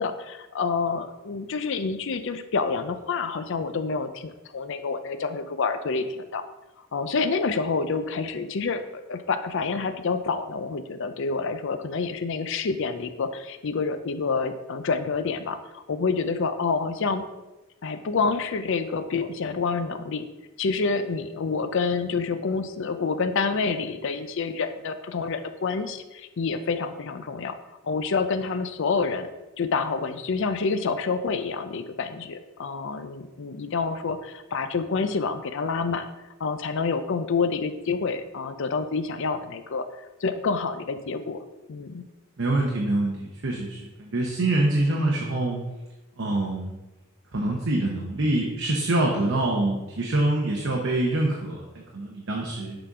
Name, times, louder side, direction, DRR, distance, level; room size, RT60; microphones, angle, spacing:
voice 1, 0.0-6.4 6.9-17.2 17.8-20.3 20.6-27.6 27.8-29.3 29.6-36.1 36.4-39.9 40.2-41.4 41.7-42.0, left 4 dB, 65° left, 9 dB, 0.5 m, -28 dB
voice 2, 42.4-45.6 46.2-46.8 47.3-52.8, right 2 dB, 65° right, -1 dB, 0.9 m, -25 dB
6.7 x 3.9 x 4.8 m, 1.0 s
head